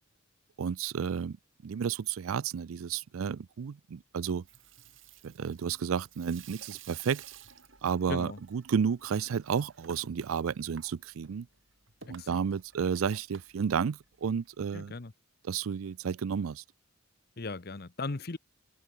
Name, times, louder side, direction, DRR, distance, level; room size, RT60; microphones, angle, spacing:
voice 1, 0.6-1.4 1.6-4.4 5.2-7.2 7.8-11.5 12.1-14.9 15.4-16.6, right 7 dB, 80° right, 0.4 m, -32 dB
Water tap faucet / Sink (filling or washing), 4.4-14.5, right 7 dB, 65° right, 2.5 m, -54 dB
voice 2, 8.1-8.4 12.2-12.4 14.7-15.1 17.4-18.4, left 3 dB, 50° left, 0.9 m, -37 dB
head